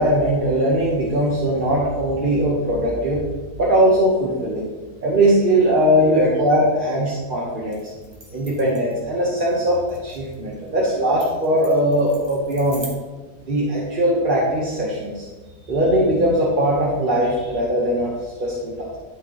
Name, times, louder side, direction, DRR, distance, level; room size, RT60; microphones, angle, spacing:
voice 1, 0.0-3.2 3.6-4.6 5.0-7.8 8.3-12.9 13.5-15.2 15.7-19.0, right 1 dB, 35° right, -5 dB, 1.3 m, -20 dB
sound 1, 7.7-12.9, right 1 dB, 15° right, 1.4 m, -43 dB
11.5 x 6.3 x 3.0 m, 1.3 s
omnidirectional pair, 1.7 m